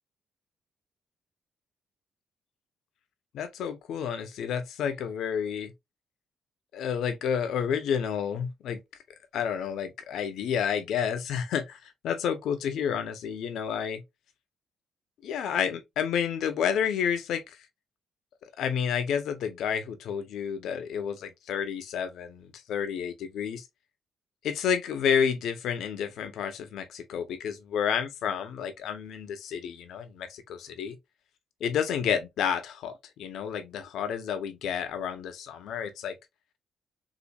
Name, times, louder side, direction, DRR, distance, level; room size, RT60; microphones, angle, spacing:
voice 1, 3.3-5.7 6.7-8.8 9.3-14.0 15.2-17.4 18.4-23.7 24.4-31.0 31.6-36.2, left 7 dB, 75° left, 0.8 m, -30 dB
4.1 x 2.7 x 2.4 m
cardioid pair, 90°, 0 cm